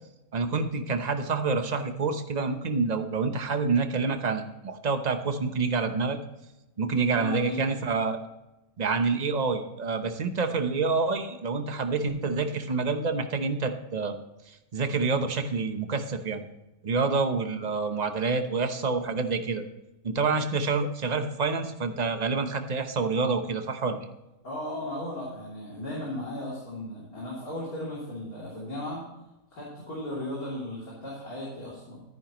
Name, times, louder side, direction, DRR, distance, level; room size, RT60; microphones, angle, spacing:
voice 1, 0.3-6.2 6.8-8.2 8.8-14.2 14.5-16.4 16.8-19.6 20.0-24.1, right 4 dB, 35° right, 7 dB, 0.9 m, -27 dB
voice 2, 6.9-7.7 24.4-29.0 29.5-32.0, left 1 dB, 80° left, -6 dB, 3.6 m, -36 dB
13.5 x 9.8 x 3.1 m, 0.99 s
omnidirectional pair, 1.5 m